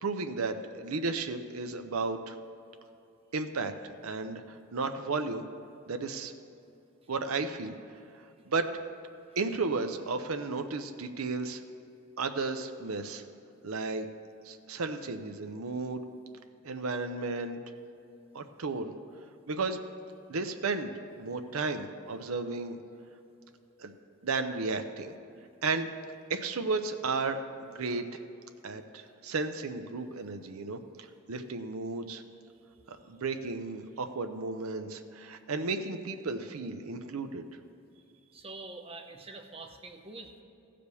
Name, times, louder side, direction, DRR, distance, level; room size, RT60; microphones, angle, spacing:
voice 1, 0.0-2.4 3.3-5.4 5.9-6.3 7.1-7.7 8.1-8.7 9.4-11.6 12.2-13.2 13.6-14.1 14.4-16.0 16.6-17.6 18.3-18.9 19.5-19.8 20.3-20.9 21.2-22.8 23.8-23.9 24.2-25.1 25.6-25.9 26.3-28.2 28.6-32.2 32.9-37.4, right 3 dB, 90° right, 7 dB, 0.7 m, -34 dB
voice 2, 38.3-40.4, right 3 dB, 25° right, 5 dB, 0.8 m, -45 dB
15.0 x 5.1 x 6.8 m, 2.7 s
head